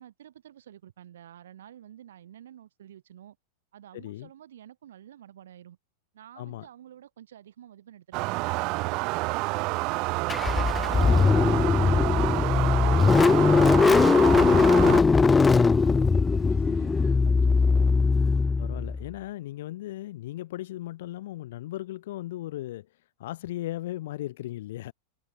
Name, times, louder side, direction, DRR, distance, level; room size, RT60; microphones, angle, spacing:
voice 1, 0.0-3.4 3.7-5.8 6.1-10.3 15.0-17.9, right 11 dB, 60° right, 5.4 m, -50 dB
voice 2, 3.9-4.3 6.3-6.7 10.9-11.7 18.6-22.9 23.2-24.9, left 15 dB, 55° left, 3.5 m, -37 dB
sound 1, 8.1-15.0, right 25 dB, 40° right, 0.5 m, -29 dB
Car / Engine starting, 10.3-19.1, left 4 dB, 15° left, 0.4 m, -20 dB
figure-of-eight pair, 90°, 0 cm